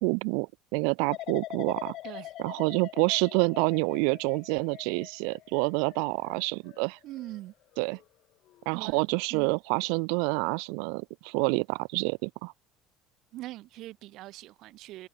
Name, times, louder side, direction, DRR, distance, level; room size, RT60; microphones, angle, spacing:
voice 1, 0.0-1.9 2.4-7.0 7.8-8.0 8.7-12.5, right 40 dB or more, 80° right, 0.5 m, -28 dB
sound 1, 1.1-8.0 8.5-8.9, left 15 dB, 60° left, 2.2 m, -44 dB
voice 2, 2.0-2.3 7.0-7.5 8.7-9.6 13.3-15.1, right 16 dB, 65° right, 6.1 m, -42 dB
supercardioid pair, 100°, 0 cm